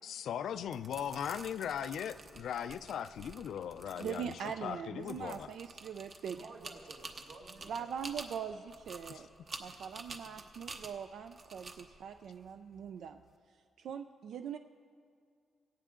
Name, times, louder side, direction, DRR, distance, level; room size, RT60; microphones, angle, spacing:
voice 1, 0.0-5.5, left 9 dB, 75° left, 12 dB, 0.4 m, -39 dB
sound 1, 0.6-13.3, right 3 dB, 40° right, 0.9 m, -50 dB
voice 2, 4.0-6.5 7.6-9.3 9.6-13.2 13.8-14.6, right 7 dB, 75° right, 8 dB, 0.4 m, -42 dB
voice 3, 6.2-8.2 9.5-10.0, right 3 dB, 60° right, 1 dB, 1.8 m, -54 dB
17.5 x 16.0 x 3.7 m, 2.2 s
wide cardioid pair, 155°, 0 cm